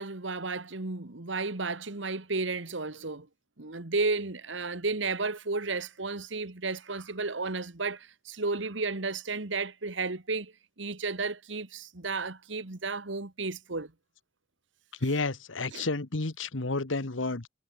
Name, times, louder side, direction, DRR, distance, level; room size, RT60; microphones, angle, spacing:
voice 1, 0.0-3.3 3.6-10.5 10.8-13.9 15.7-15.9, right 3 dB, 70° right, 1.7 m, -33 dB
voice 2, 15.0-17.5, left 3 dB, 90° left, 1.5 m, -31 dB
head